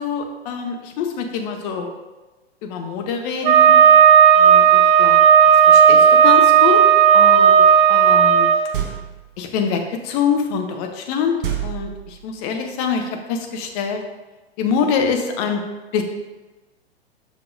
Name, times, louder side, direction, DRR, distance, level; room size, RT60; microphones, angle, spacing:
voice 1, 0.0-1.9 2.6-3.7 4.4-5.2 5.7-6.8 7.1-7.6 7.9-8.5 9.4-11.4 11.6-14.0 14.6-15.6 15.9-16.0, left 6 dB, 35° left, 4 dB, 0.9 m, -24 dB
Wind instrument woodwind instrument, 3.4-8.6, right 8 dB, 20° right, 0.3 m, -11 dB
sound 1, 8.7-9.4 11.4-12.4, right 10 dB, 55° right, 1.1 m, -28 dB
7.0 x 5.7 x 2.6 m, 1.2 s
figure-of-eight pair, 100°, 32 cm